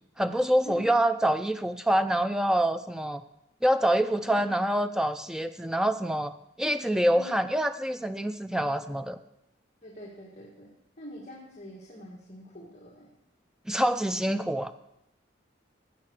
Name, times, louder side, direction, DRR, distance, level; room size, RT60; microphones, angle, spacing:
voice 1, 0.2-3.2 3.6-6.3 6.6-9.2 13.7-14.7, right 1 dB, 5° right, 10 dB, 0.4 m, -26 dB
voice 2, 8.5-9.0 9.8-10.7 11.0-13.1, equal, 35° left, -2 dB, 1.7 m, -45 dB
15.5 x 5.8 x 6.4 m, 0.85 s
head